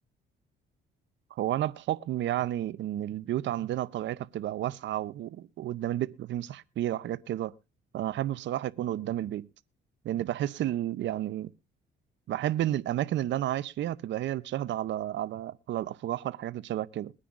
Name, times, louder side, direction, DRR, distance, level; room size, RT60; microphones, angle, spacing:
voice 1, 1.3-7.5 7.9-9.5 10.0-11.5 12.3-17.1, right 12 dB, 70° right, 0.6 m, -31 dB
21.5 x 9.9 x 2.5 m
cardioid pair, 90°, 20 cm